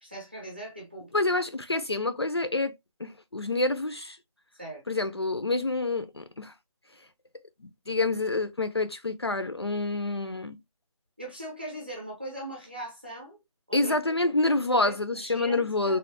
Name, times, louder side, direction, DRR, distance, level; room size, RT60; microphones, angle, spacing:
voice 1, 0.0-1.1 4.6-4.8 11.2-13.4 13.7-13.9 14.8-16.0, right 1 dB, 20° right, 0.7 m, -40 dB
voice 2, 1.1-2.7 3.0-4.2 4.9-6.5 7.9-10.6 13.7-16.0, left 2 dB, 50° left, 0.4 m, -27 dB
3.1 x 2.4 x 2.7 m
figure-of-eight pair, 180°, 18 cm